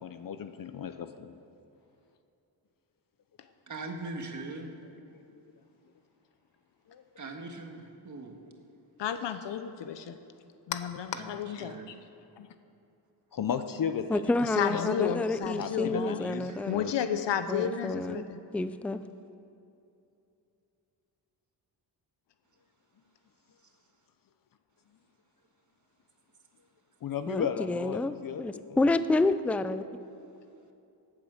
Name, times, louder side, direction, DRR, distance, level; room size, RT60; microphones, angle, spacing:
voice 1, 0.0-1.4 6.9-7.0 13.3-14.2 14.6-15.3 15.6-16.5 27.0-28.6, left 7 dB, 55° left, 9 dB, 0.6 m, -35 dB
voice 2, 3.7-4.7 7.2-8.4 11.1-11.3 11.6-11.9 16.5-16.8 17.1-17.2, right 3 dB, 45° right, 3 dB, 1.7 m, -41 dB
voice 3, 9.0-10.2 10.7-12.0 12.4-12.5 14.4-16.2 16.7-18.4, left 8 dB, 85° left, 10 dB, 0.8 m, -32 dB
voice 4, 14.1-16.9 17.5-18.3 18.5-19.0 27.3-29.9, left 2 dB, 5° left, 12 dB, 0.3 m, -29 dB
16.5 x 8.7 x 6.4 m, 2.7 s
wide cardioid pair, 120°, 42 cm